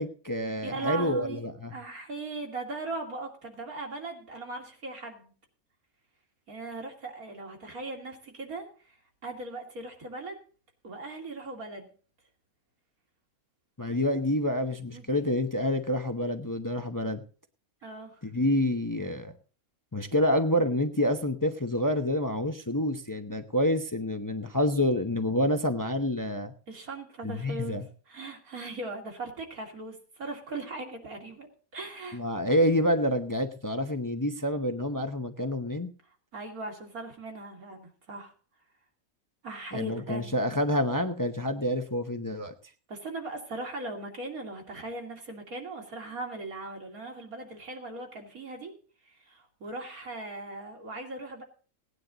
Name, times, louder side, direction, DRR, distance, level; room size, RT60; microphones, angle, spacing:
voice 1, 0.0-1.7 13.8-17.2 18.2-19.3 19.9-26.5 27.2-27.8 32.1-35.9 39.7-42.5, left 1 dB, 20° left, 6 dB, 0.7 m, -28 dB
voice 2, 0.6-1.4 1.7-5.3 6.5-8.6 9.2-10.4 10.8-11.9 13.9-14.2 14.9-15.2 17.8-18.2 26.7-27.8 28.1-31.5 31.7-32.2 36.3-38.3 39.4-40.3 42.9-48.7 49.1-51.4, right 2 dB, 90° right, 2 dB, 3.1 m, -39 dB
17.5 x 9.8 x 3.9 m, 0.41 s
omnidirectional pair, 1.5 m